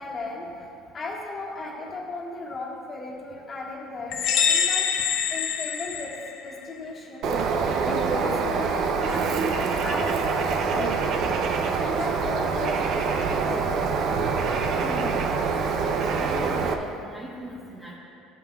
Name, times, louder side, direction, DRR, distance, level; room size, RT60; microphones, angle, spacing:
voice 1, 0.0-4.9 5.3-6.1 6.4-7.4 7.8-13.6, left 3 dB, 25° left, -3 dB, 1.6 m, -36 dB
sound 1, 4.1-6.7, left 7 dB, 50° left, 0.8 m, -25 dB
Bird, 7.2-16.7, right 5 dB, 45° right, 0.6 m, -25 dB
voice 2, 14.7-15.2 15.6-18.0, equal, 10° right, -4 dB, 0.9 m, -38 dB
15.5 x 9.4 x 2.3 m, 2.6 s
cardioid pair, 165°, 0 cm